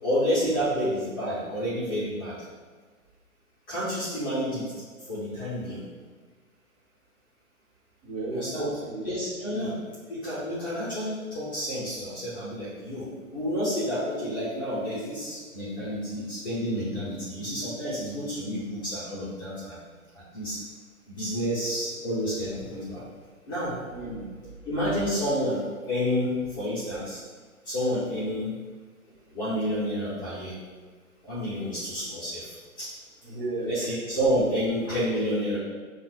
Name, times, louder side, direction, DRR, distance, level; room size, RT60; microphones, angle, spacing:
voice 1, 0.0-2.4 3.7-4.7 5.1-5.8 8.3-8.7 9.0-9.7 10.1-19.8 20.1-20.6 21.1-23.0 23.5-23.8 24.6-27.2 27.6-28.5 29.3-30.6 31.2-32.9 33.6-35.6, equal, 15° left, -11 dB, 0.6 m, -29 dB
voice 2, 8.0-9.1 9.5-9.7 23.9-24.3 33.2-33.7, right 2 dB, 40° right, -5 dB, 1.3 m, -34 dB
7.1 x 2.4 x 2.3 m, 1.5 s
figure-of-eight pair, 140°, 42 cm